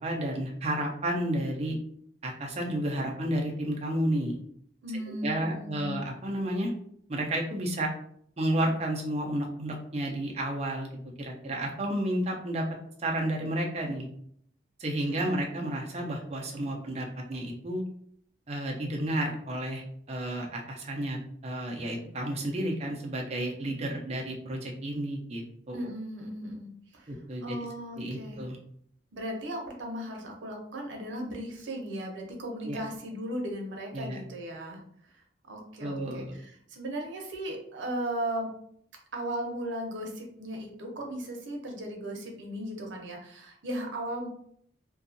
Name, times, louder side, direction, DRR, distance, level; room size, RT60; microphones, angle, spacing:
voice 1, 0.0-1.8 2.2-4.4 5.1-6.7 7.1-7.9 8.4-10.9 11.2-12.6 13.0-14.1 14.8-17.8 18.5-25.9 27.1-27.6 28.0-28.6 32.6-32.8 33.9-34.2 35.8-36.4, right 1 dB, 35° right, 0 dB, 0.5 m, -31 dB
voice 2, 4.8-6.0 25.7-26.7 26.9-28.4 29.1-34.8 35.1-38.5 39.1-44.3, right 1 dB, 85° right, 1 dB, 0.7 m, -36 dB
2.6 x 2.3 x 2.6 m, 0.66 s
head